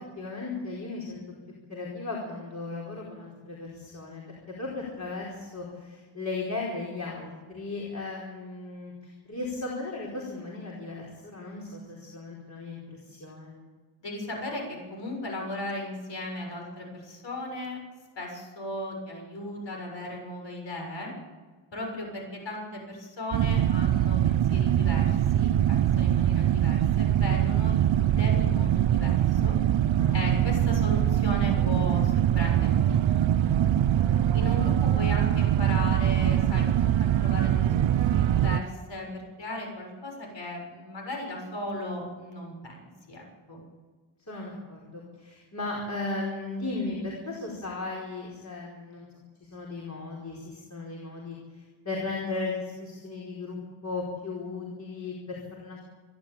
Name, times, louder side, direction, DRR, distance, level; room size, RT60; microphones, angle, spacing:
voice 1, 0.2-1.2 1.7-13.5 29.9-30.7 34.0-34.3 44.3-49.1 49.4-55.8, left 3 dB, 35° left, -3 dB, 4.8 m, -36 dB
voice 2, 14.0-17.8 18.2-21.1 21.7-29.5 30.1-33.0 34.3-43.6, left 1 dB, 60° left, 1 dB, 6.9 m, -36 dB
sound 1, 23.3-38.6, right 11 dB, 70° right, 0.7 m, -23 dB
27.5 x 11.5 x 8.9 m, 1.4 s
wide cardioid pair, 135°, 48 cm